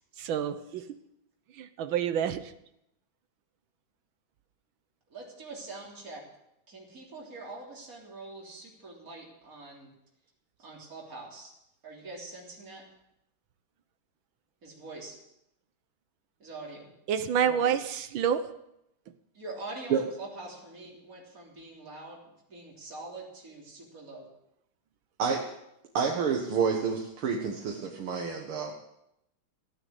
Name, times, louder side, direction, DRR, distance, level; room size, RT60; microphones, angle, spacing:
voice 1, 0.2-0.9 1.6-2.5 17.1-18.5, right 8 dB, 70° right, 12 dB, 1.7 m, -28 dB
voice 2, 5.1-6.2 6.7-9.9 10.6-11.5 11.8-12.8 14.6-15.2 16.4-16.9 19.3-24.3, right 2 dB, 40° right, -3 dB, 3.9 m, -44 dB
voice 3, 25.2-25.5 25.9-28.7, right 6 dB, 90° right, 1 dB, 2.4 m, -28 dB
16.0 x 9.5 x 8.3 m, 0.81 s
omnidirectional pair, 2.3 m